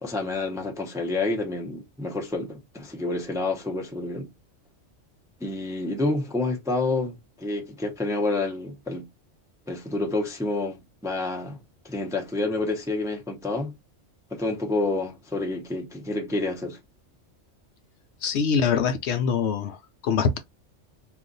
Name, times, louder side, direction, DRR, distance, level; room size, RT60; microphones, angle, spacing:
voice 1, 0.0-4.3 5.4-9.1 9.7-11.6 11.8-13.8 14.3-16.8, left 2 dB, 5° right, 0.4 m, -28 dB
voice 2, 18.2-20.4, left 6 dB, 70° left, 0.8 m, -24 dB
2.5 x 2.3 x 3.9 m
omnidirectional pair, 1.3 m